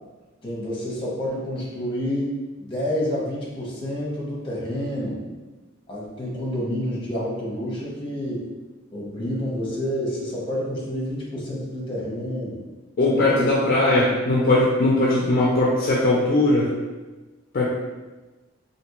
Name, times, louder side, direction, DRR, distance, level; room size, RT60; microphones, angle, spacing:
voice 1, 0.4-2.3 2.6-5.2 5.9-8.5 8.9-12.6 13.1-13.5, equal, 25° left, -5 dB, 0.9 m, -29 dB
voice 2, 13.0-16.7 17.5-17.7, left 2 dB, 45° left, -4 dB, 0.4 m, -19 dB
3.3 x 2.6 x 2.9 m, 1.2 s
head